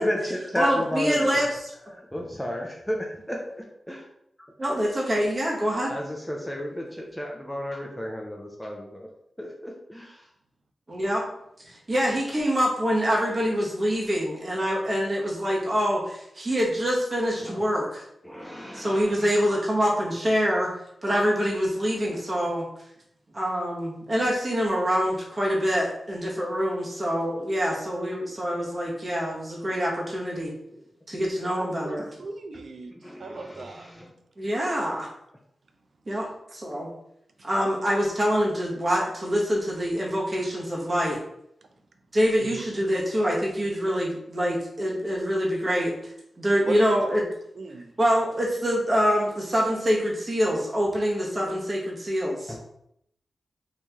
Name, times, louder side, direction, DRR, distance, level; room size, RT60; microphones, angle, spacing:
voice 1, 0.0-1.3 1.9-4.0 5.9-9.1 9.4-10.3 17.4-17.6 18.2-19.2 31.9-32.0 32.9-34.1 52.5-52.6, left 1 dB, 10° left, -1 dB, 0.5 m, -33 dB
voice 2, 0.6-1.5 4.6-5.9 10.9-11.2 11.7-18.0 18.7-20.7 21.0-22.6 23.3-30.5 31.1-32.0 34.4-35.1 36.1-36.9 37.4-41.2 42.1-45.9 46.4-47.2 48.0-52.5, equal, 35° right, -4 dB, 1.2 m, -25 dB
voice 3, 31.6-32.9 33.2-33.9 36.1-36.2 42.4-42.5 42.9-43.0 46.6-46.9 47.5-48.0, right 3 dB, 70° right, 6 dB, 0.5 m, -38 dB
3.1 x 2.7 x 3.5 m, 0.76 s
cardioid pair, 65°, 0 cm